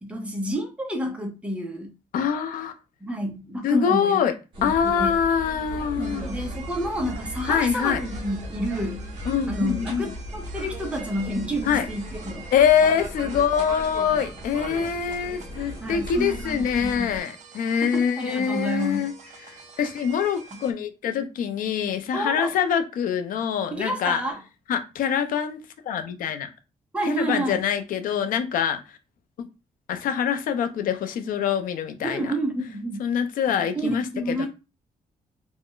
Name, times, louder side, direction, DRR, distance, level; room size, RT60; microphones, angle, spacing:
voice 1, 0.0-1.9 3.0-4.2 4.6-5.2 6.0-9.1 9.5-12.5 15.8-17.2 17.8-19.1 22.1-22.5 23.7-24.4 26.9-27.6 32.0-33.1 33.7-34.5, equal, 10° right, 0.6 m, -29 dB
voice 2, 2.1-2.7 3.6-4.3 4.6-6.3 7.4-8.0 9.3-10.1 11.6-11.9 12.5-19.1 19.5-24.2 24.7-25.6 25.8-26.5 27.1-29.0 29.9-32.3 33.0-34.5, left 7 dB, 75° left, 0.5 m, -24 dB
sound 1, 4.5-17.2, right 1 dB, 35° right, 0.9 m, -37 dB
sound 2, 6.0-20.7, right 5 dB, 55° right, 0.5 m, -47 dB
2.4 x 2.0 x 3.7 m
wide cardioid pair, 165°, 14 cm